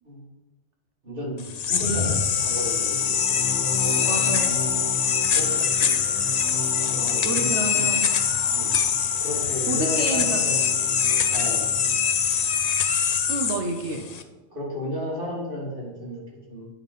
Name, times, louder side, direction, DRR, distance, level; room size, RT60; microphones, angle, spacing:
voice 1, 1.0-3.7 5.2-5.9 6.9-7.9 8.5-8.7 9.2-10.6 11.3-11.7 14.5-16.2 16.5-16.7, equal, 45° right, -6 dB, 2.7 m, -33 dB
sound 1, 1.4-14.2, left 7 dB, 55° left, 0.4 m, -23 dB
sound 2, 2.7-12.9, left 3 dB, 70° left, 1.1 m, -36 dB
voice 2, 4.0-4.8 7.2-8.1 9.7-10.4 13.3-14.1, right 3 dB, 70° right, 3 dB, 1.0 m, -29 dB
9.5 x 3.6 x 5.3 m, 1.1 s
omnidirectional pair, 1.2 m